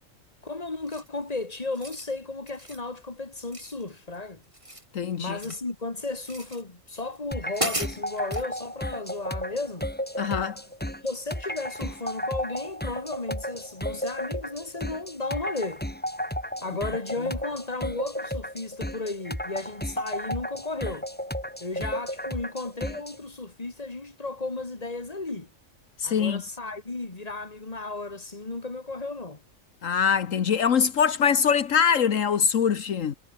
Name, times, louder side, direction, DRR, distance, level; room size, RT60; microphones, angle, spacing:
voice 1, 0.4-4.4 5.2-9.9 11.0-15.8 16.6-21.1 21.6-25.5 26.0-29.4, left 3 dB, 30° left, 2.6 m, -34 dB
sound 1, 0.9-1.2 1.6-2.1 2.5-2.9 3.5-4.2 4.4-5.7 6.2-6.6 7.1-7.2 7.5-8.5, right 1 dB, 25° right, 6.1 m, -35 dB
voice 2, 4.9-5.4 10.2-10.6 26.0-26.4 29.8-33.1, left 7 dB, 75° left, 1.5 m, -23 dB
sound 2, 7.3-23.2, equal, 5° left, 3.6 m, -34 dB
omnidirectional pair, 1.4 m